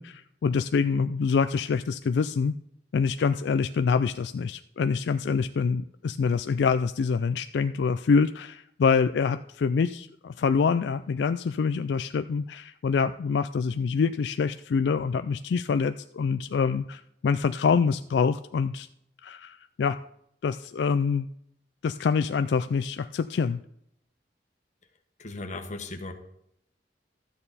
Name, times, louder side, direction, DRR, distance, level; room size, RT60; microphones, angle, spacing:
voice 1, 0.0-2.5 2.9-18.9 19.2-20.0 20.4-21.3 21.8-23.6, left 5 dB, 70° left, 11 dB, 0.3 m, -26 dB
voice 2, 25.2-26.1, left 2 dB, 45° left, 4 dB, 1.3 m, -36 dB
13.0 x 8.8 x 4.2 m, 0.74 s
head